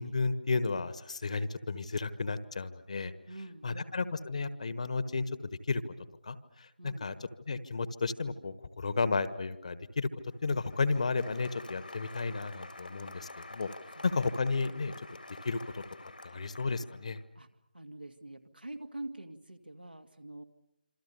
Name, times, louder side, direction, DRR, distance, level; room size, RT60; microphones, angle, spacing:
voice 1, 0.0-3.1 3.6-5.3 5.7-5.8 6.2-7.1 7.5-13.7 14.0-14.9 15.4-15.8 16.2-17.2, left 4 dB, 45° left, 14 dB, 1.4 m, -33 dB
voice 2, 3.3-4.0 6.8-7.1 13.9-14.1 16.3-16.4 17.4-17.5 17.7-20.4, right 1 dB, 85° right, 6 dB, 2.2 m, -45 dB
Applause, 10.3-17.2, left 2 dB, 70° left, 2.1 m, -49 dB
27.0 x 26.0 x 6.9 m, 0.91 s
figure-of-eight pair, 155°, 5 cm